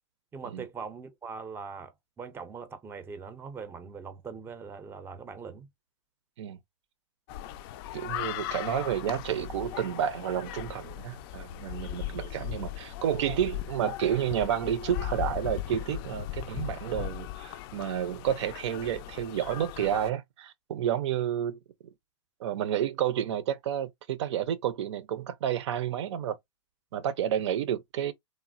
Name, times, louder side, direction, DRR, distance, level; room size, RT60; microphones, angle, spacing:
voice 1, 0.3-5.7, right 5 dB, 15° right, 0.5 m, -41 dB
sound 1, 7.3-20.1, left 13 dB, 50° left, 0.4 m, -38 dB
voice 2, 7.9-21.6 22.4-26.4 26.9-28.1, right 10 dB, 70° right, 0.5 m, -30 dB
3.1 x 2.0 x 2.4 m
hypercardioid pair, 115°, 16 cm